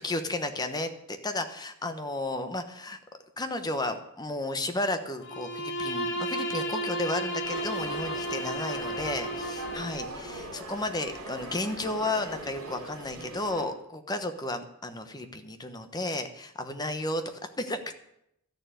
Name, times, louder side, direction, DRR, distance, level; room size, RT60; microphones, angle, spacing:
voice 1, 0.0-3.0 3.4-17.9, left 2 dB, 20° left, 7 dB, 1.0 m, -33 dB
Bowed string instrument, 5.2-10.1, equal, 55° left, 2.8 m, -33 dB
sound 1, 7.4-13.7, right 1 dB, 85° right, 3.7 m, -41 dB
13.0 x 6.9 x 9.0 m, 0.79 s
head